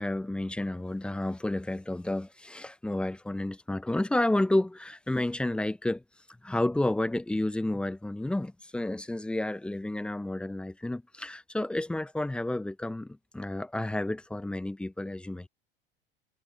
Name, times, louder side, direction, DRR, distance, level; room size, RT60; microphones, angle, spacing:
voice 1, 0.0-6.0 6.4-15.5, left 1 dB, 5° left, 0.4 m, -31 dB
hypercardioid pair, 85°, 30 cm